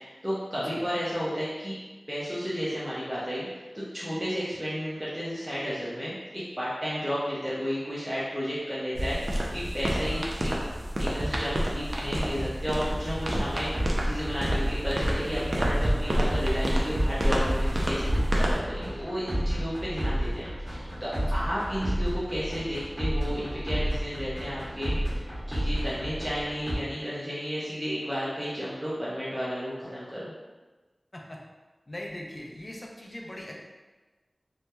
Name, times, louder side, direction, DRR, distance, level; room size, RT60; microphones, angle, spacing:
voice 1, 0.0-1.7 2.1-10.5 11.0-24.9 25.5-30.3, equal, 10° right, -9 dB, 0.6 m, -32 dB
sound 1, 9.0-18.6, equal, 65° right, 0.4 m, -29 dB
sound 2, 12.9-26.8, equal, 35° right, 1.2 m, -31 dB
voice 2, 31.9-33.5, left 1 dB, 40° left, -1 dB, 0.4 m, -41 dB
2.8 x 2.2 x 2.2 m, 1.2 s
wide cardioid pair, 55°, 0 cm